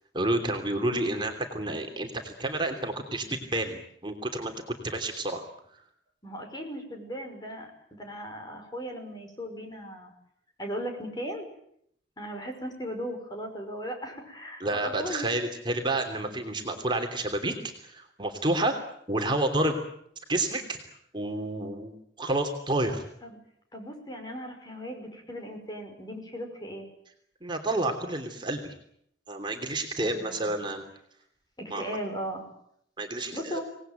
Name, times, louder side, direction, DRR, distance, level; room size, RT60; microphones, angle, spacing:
voice 1, 0.1-5.5 14.6-17.5 17.8-18.7 19.1-19.8 20.3-20.8 21.1-21.9 22.2-23.0 27.4-28.7 29.3-30.9 31.7-32.0 33.0-33.6, right 2 dB, 25° right, 4 dB, 3.1 m, -29 dB
voice 2, 0.8-1.2 6.2-10.1 10.6-11.5 12.2-15.3 22.9-23.0 23.2-23.4 23.7-26.9 30.0-30.5 31.6-32.5 33.3-33.6, equal, 25° left, 4 dB, 5.6 m, -37 dB
26.0 x 19.0 x 9.2 m, 0.72 s
head